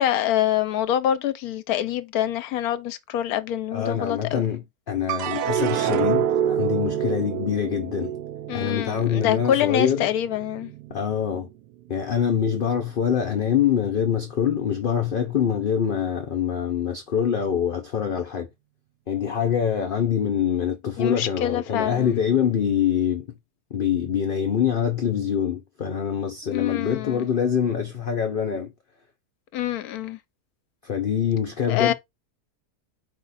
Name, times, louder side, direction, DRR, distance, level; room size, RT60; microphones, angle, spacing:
voice 1, 0.0-4.5 8.5-10.7 21.0-22.2 26.4-27.3 29.5-30.2 31.7-31.9, left 11 dB, 75° left, 1.0 m, -25 dB
voice 2, 3.7-8.2 8.5-10.1 10.9-11.5 11.9-18.5 19.1-23.4 23.7-28.7 30.8-31.9, left 8 dB, 55° left, 0.6 m, -24 dB
sound 1, 5.1-11.5 12.0-12.7, right 9 dB, 85° right, 1.2 m, -28 dB
4.9 x 2.4 x 4.0 m
omnidirectional pair, 1.7 m